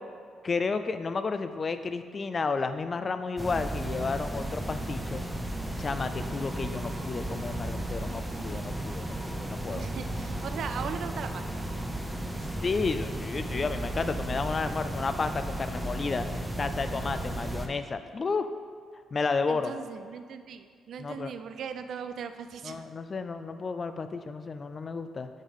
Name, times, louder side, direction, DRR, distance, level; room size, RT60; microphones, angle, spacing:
voice 1, 0.4-5.2 5.8-9.9 12.6-16.3 16.6-18.5 19.1-19.7 21.0-21.3 22.6-25.3, left 4 dB, 35° left, 10 dB, 0.4 m, -32 dB
sound 1, 3.4-17.7, right 1 dB, 5° right, 0.6 m, -34 dB
voice 2, 9.7-11.6 19.5-22.9, right 7 dB, 65° right, 9 dB, 0.4 m, -39 dB
7.2 x 3.6 x 5.6 m, 2.1 s
cardioid pair, 90°, 0 cm